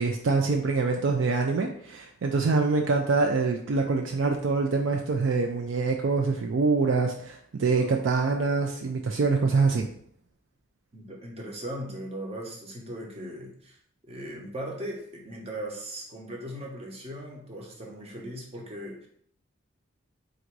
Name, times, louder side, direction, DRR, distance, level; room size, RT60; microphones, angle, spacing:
voice 1, 0.0-9.9, right 4 dB, 65° right, 3 dB, 0.4 m, -25 dB
voice 2, 10.9-13.8 14.1-19.1, right 1 dB, 30° right, -1 dB, 0.8 m, -38 dB
3.8 x 2.6 x 4.5 m, 0.65 s
head